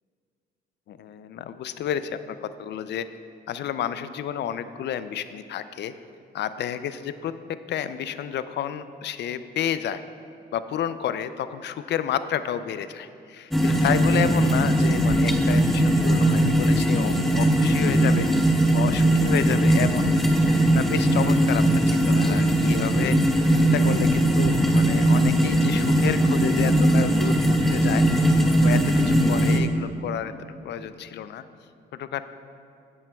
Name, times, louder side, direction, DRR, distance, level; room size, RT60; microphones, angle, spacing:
voice 1, 0.9-3.1 3.5-5.9 6.3-7.3 7.7-10.0 10.5-18.3 18.7-20.2 20.7-23.2 23.6-30.3 30.6-31.4 32.0-32.3, left 9 dB, 60° left, 13 dB, 0.4 m, -30 dB
sound 1, 13.5-29.6, right 1 dB, ahead, 0.7 m, -20 dB
10.5 x 8.8 x 2.3 m, 2.6 s
cardioid pair, 90°, 20 cm